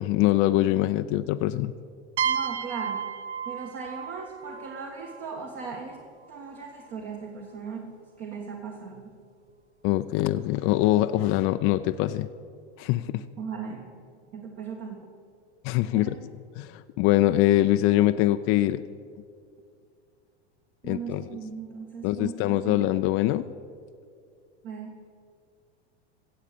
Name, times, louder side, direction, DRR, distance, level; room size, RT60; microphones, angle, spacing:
voice 1, 0.0-1.7 9.8-12.3 12.8-13.2 15.6-16.2 16.6-18.8 20.8-21.2 22.0-23.4, left 15 dB, 40° left, 10 dB, 0.4 m, -23 dB
voice 2, 2.2-3.1 3.5-6.0 6.3-9.2 13.4-13.9 14.3-15.1 15.9-16.1 20.8-22.9 24.6-25.0, right 5 dB, 45° right, 1 dB, 1.7 m, -38 dB
sound 1, 2.2-5.8, right 8 dB, 75° right, 0.9 m, -32 dB
16.5 x 7.4 x 6.8 m, 2.3 s
hypercardioid pair, 105°, 34 cm